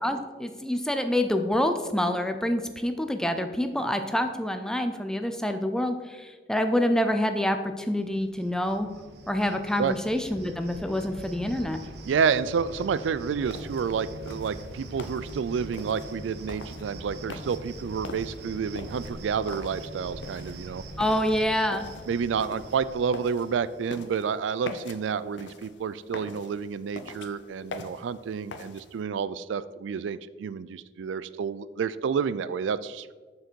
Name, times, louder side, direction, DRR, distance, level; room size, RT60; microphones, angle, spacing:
voice 1, 0.0-8.9 9.3-11.8 21.0-21.9, left 1 dB, 5° left, 7 dB, 0.5 m, -27 dB
Cricket, 8.0-23.7, right 1 dB, 60° right, 0.8 m, -43 dB
voice 2, 12.1-20.8 22.1-33.1, right 6 dB, 85° right, 16 dB, 0.3 m, -29 dB
sound 1, 13.5-29.0, left 3 dB, 80° left, 0.7 m, -44 dB
6.7 x 6.5 x 4.5 m, 1.4 s
head